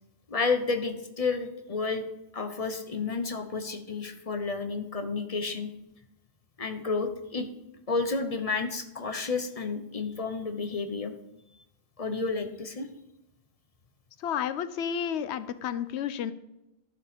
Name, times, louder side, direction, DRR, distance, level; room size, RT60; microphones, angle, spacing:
voice 1, 0.3-2.0 2.3-5.7 6.6-7.5 7.9-11.1 12.0-12.9, left 4 dB, 35° left, 7 dB, 0.9 m, -31 dB
voice 2, 14.2-16.3, left 8 dB, 90° left, 14 dB, 0.9 m, -31 dB
12.0 x 5.2 x 5.1 m, 0.91 s
omnidirectional pair, 1.1 m